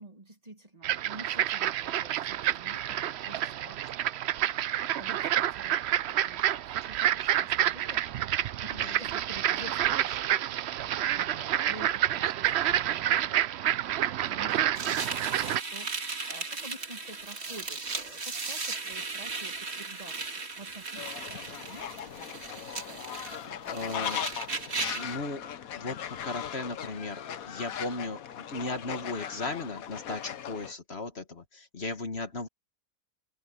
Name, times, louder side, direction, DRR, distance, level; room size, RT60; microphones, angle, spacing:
voice 1, 0.0-8.3 8.7-13.4 13.9-22.3 22.5-23.0 23.5-24.2, right 1 dB, 25° right, 1.9 m, -50 dB
sound 1, 0.8-15.6, right 11 dB, 65° right, 0.7 m, -28 dB
voice 2, 8.7-9.0 23.7-24.2 24.9-25.5 25.7-32.5, left 3 dB, 45° left, 1.7 m, -36 dB
sound 2, 14.8-25.2, right 4 dB, 50° right, 2.2 m, -37 dB
Fowl, 21.0-30.7, left 9 dB, 75° left, 1.4 m, -39 dB
omnidirectional pair, 1.5 m